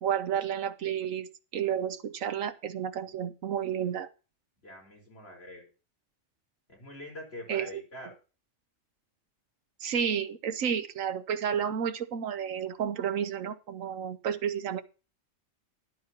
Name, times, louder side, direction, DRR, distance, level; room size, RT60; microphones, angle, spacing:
voice 1, 0.0-1.3 1.5-4.1 7.5-7.8 9.8-14.8, right 8 dB, 85° right, 12 dB, 1.3 m, -31 dB
voice 2, 4.6-5.7 6.7-8.1, left 1 dB, 50° left, -1 dB, 4.7 m, -44 dB
13.5 x 12.0 x 2.9 m, 0.34 s
omnidirectional pair, 1.3 m